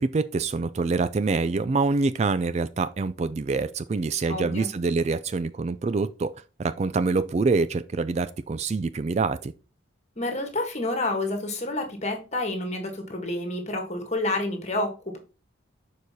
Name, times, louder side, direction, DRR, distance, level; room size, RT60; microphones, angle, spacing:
voice 1, 0.0-6.3 6.6-9.5, right 4 dB, 35° right, 0.3 m, -25 dB
voice 2, 4.3-4.7 10.2-15.2, left 2 dB, 35° left, 1.6 m, -29 dB
6.8 x 4.8 x 4.1 m
head